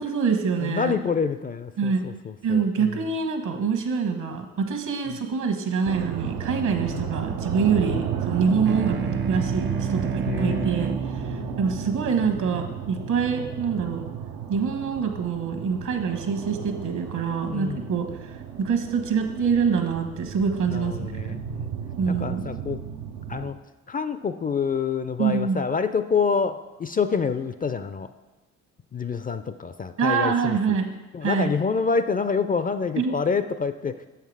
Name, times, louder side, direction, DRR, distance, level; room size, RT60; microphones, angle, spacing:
voice 1, 0.0-0.9 1.8-2.1 2.4-14.0 14.5-21.4 22.0-22.4 25.2-25.6 30.0-30.9 31.2-31.5 33.0-33.1, right 5 dB, 65° right, 5 dB, 1.2 m, -25 dB
voice 2, 0.6-3.0 6.9-7.1 7.9-8.0 10.3-10.7 11.3-11.6 17.5-17.9 20.7-21.7 22.1-22.8 23.3-23.6 23.9-28.1 28.9-30.6 31.1-34.1, left 5 dB, 25° left, 11 dB, 0.4 m, -27 dB
sound 1, 5.8-23.5, right 8 dB, 85° right, 0.6 m, -33 dB
sound 2, 8.6-13.5, right 5 dB, 35° right, 0.6 m, -31 dB
6.9 x 5.8 x 4.7 m, 1.1 s
supercardioid pair, 60°, 33 cm